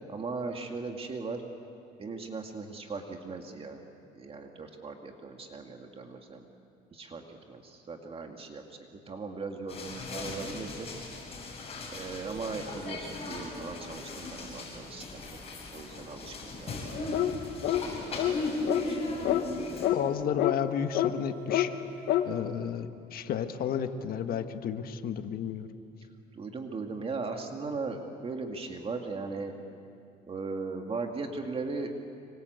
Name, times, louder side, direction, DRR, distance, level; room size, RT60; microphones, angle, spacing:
voice 1, 0.1-1.4 2.0-3.8 4.1-6.4 6.9-8.6 9.1-10.9 11.9-15.4 15.7-16.8 17.6-19.0 26.3-29.5 30.3-31.9, right 4 dB, 35° right, 3 dB, 2.3 m, -38 dB
sound 1, 9.7-19.9, left 2 dB, 35° left, 7.5 m, -37 dB
sound 2, 17.1-17.4 17.6-17.8 18.2-18.4 18.7-18.9 19.3-19.4 19.8-20.0 20.4-20.6 21.0-21.1 21.5-21.7 22.1-22.3, left 13 dB, 80° left, 1.4 m, -26 dB
voice 2, 19.9-21.7 22.2-25.7, left 8 dB, 65° left, 8 dB, 1.5 m, -32 dB
26.0 x 25.0 x 8.2 m, 2.5 s
cardioid pair, 110°, 17 cm